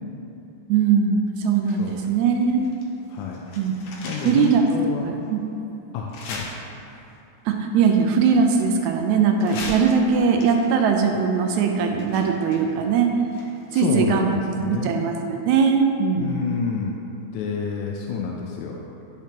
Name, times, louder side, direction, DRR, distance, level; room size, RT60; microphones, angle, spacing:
voice 1, 0.7-2.6 3.6-3.7 4.3-4.6 5.0-5.4 7.5-13.1 13.7-14.3 14.7-16.3, right 6 dB, 80° right, 3 dB, 1.9 m, -20 dB
sound 1, 1.6-2.9 3.2-4.7 5.2-5.3 6.1-7.1 8.0-9.0 9.4-13.8 14.1-14.2, left 2 dB, 70° left, 2.0 m, -39 dB
voice 2, 3.1-3.4 4.0-5.2 5.9-6.5 13.7-15.0 16.2-16.9 17.3-18.8, left 5 dB, 90° left, -1 dB, 2.1 m, -29 dB
10.5 x 5.9 x 2.9 m, 3.0 s
omnidirectional pair, 3.4 m